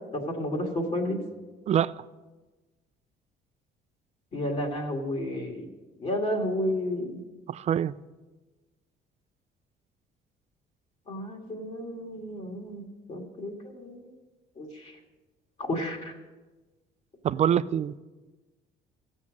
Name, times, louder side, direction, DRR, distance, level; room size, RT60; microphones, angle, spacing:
voice 1, 0.3-1.2 4.3-5.7 6.0-7.2 11.1-14.0 14.6-14.9 15.6-16.1, left 1 dB, 40° left, 2.1 m, -31 dB
voice 2, 7.5-7.9 17.2-18.0, right 9 dB, 40° right, 0.4 m, -25 dB
16.5 x 7.2 x 6.3 m
cardioid pair, 110°, 17 cm